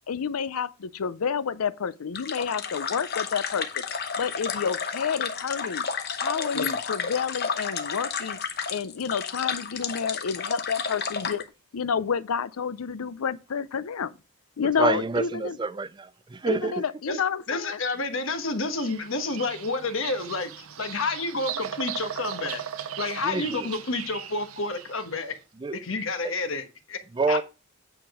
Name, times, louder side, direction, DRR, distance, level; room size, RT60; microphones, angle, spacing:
voice 1, 0.1-3.8 4.2-5.9 6.2-8.4 8.7-11.4 11.7-14.1 14.6-15.6 16.5-17.8, left 6 dB, 85° left, 0.5 m, -29 dB
sound 1, 2.1-11.4, left 6 dB, 50° left, 0.9 m, -31 dB
voice 2, 14.6-16.8 17.1-17.2 23.2-23.7 25.6-25.8 26.2-26.3 27.1-27.4, right 4 dB, 20° right, 0.4 m, -28 dB
voice 3, 17.5-22.6 23.0-25.3 25.8-27.0 27.3-27.4, left 3 dB, 65° left, 1.3 m, -30 dB
Bird vocalization bird call bird song, 18.5-25.1, right 9 dB, 80° right, 0.7 m, -37 dB
8.8 x 4.9 x 4.9 m
head